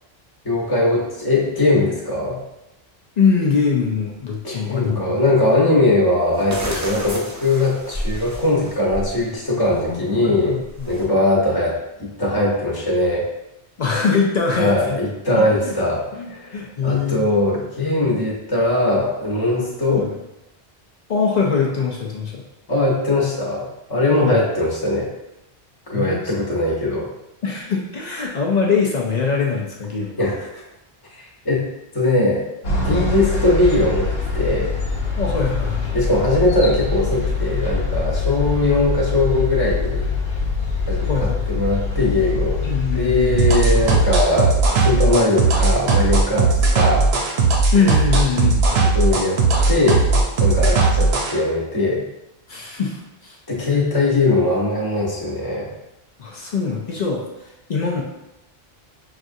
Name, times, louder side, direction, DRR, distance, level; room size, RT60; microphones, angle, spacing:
voice 1, 0.4-2.4 4.4-10.6 10.9-13.3 14.5-20.1 22.7-25.1 25.9-27.1 30.2-30.6 31.4-31.7 31.9-32.4 32.8-34.7 35.9-40.1 40.9-42.7 42.9-47.1 48.9-49.4 49.7-50.0 50.4-52.0 53.5-55.7, left 2 dB, 25° left, -4 dB, 0.9 m, -20 dB
voice 2, 3.2-5.2 9.7-11.0 13.8-15.0 15.3-15.7 16.1-16.3 16.5-17.2 19.9-20.2 21.1-22.4 24.2-24.4 25.9-26.6 27.4-30.2 35.2-36.0 41.1-41.6 42.6-43.7 47.7-48.8 52.5-53.4 56.2-58.0, left 5 dB, 55° left, -1 dB, 0.5 m, -23 dB
sound 1, 5.5-5.6 6.3-9.2 9.6-9.9 10.5-11.0, equal, 25° right, 0.4 m, -31 dB
sound 2, 32.6-44.2, left 4 dB, 70° left, 1.1 m, -23 dB
sound 3, 43.4-51.3, right 3 dB, 85° right, 1.0 m, -17 dB
5.8 x 2.5 x 2.6 m, 0.92 s
omnidirectional pair, 1.1 m